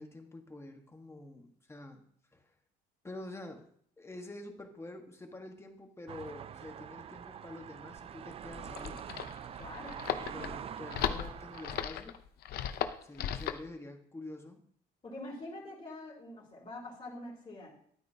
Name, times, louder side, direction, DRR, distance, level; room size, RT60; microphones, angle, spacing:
voice 1, 0.0-2.0 2.3-2.4 3.0-3.7 4.0-9.0 10.3-12.2 13.0-14.6, left 2 dB, 15° left, 4 dB, 1.4 m, -47 dB
sound 1, 6.1-11.8, right 8 dB, 35° right, 0.3 m, -45 dB
sound 2, 8.5-13.7, left 10 dB, 70° left, 0.7 m, -36 dB
voice 2, 9.6-10.0 15.0-17.7, left 2 dB, 30° left, -5 dB, 3.4 m, -45 dB
11.5 x 9.1 x 2.8 m, 0.63 s
cardioid pair, 110°, 17 cm